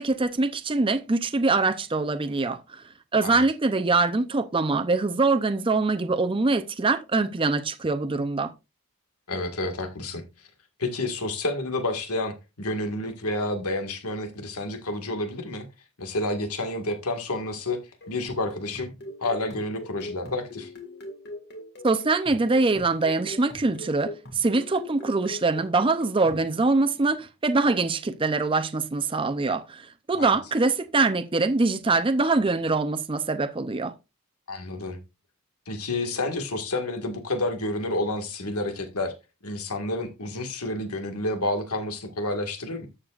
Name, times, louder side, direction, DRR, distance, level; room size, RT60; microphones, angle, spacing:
voice 1, 0.0-2.8 3.1-8.5 21.8-33.9, right 3 dB, 25° right, 0.5 m, -24 dB
voice 2, 9.3-10.2 10.8-15.7 16.0-17.8 18.1-18.9 19.2-20.7 30.1-30.4 34.5-35.0 35.7-39.1 39.4-42.9, left 2 dB, 85° left, 1.8 m, -29 dB
sound 1, 18.0-26.5, left 1 dB, 50° left, 1.9 m, -42 dB
13.0 x 7.4 x 2.4 m
head